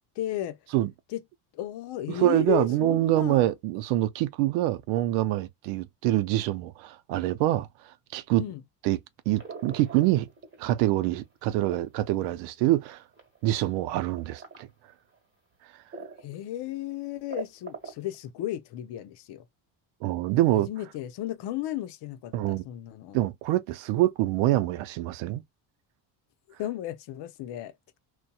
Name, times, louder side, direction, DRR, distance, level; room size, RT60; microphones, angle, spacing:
voice 1, 0.2-0.6 1.1-1.2 1.5-3.5 8.4-8.6 16.2-19.4 20.7-23.2 26.6-28.0, left 13 dB, 65° left, 0.7 m, -34 dB
voice 2, 2.1-7.7 8.1-8.4 8.8-9.0 9.3-10.3 10.6-13.0 13.4-14.7 20.0-20.7 22.3-22.6 23.1-25.4, right 15 dB, 85° right, 0.6 m, -25 dB
sound 1, 9.3-10.7 11.1-13.4 14.2-14.6 15.1-15.2 15.9-16.3 16.7-16.8 17.0-18.2, right 5 dB, 30° right, 1.4 m, -41 dB
2.7 x 2.3 x 2.3 m
supercardioid pair, 90°, 45 cm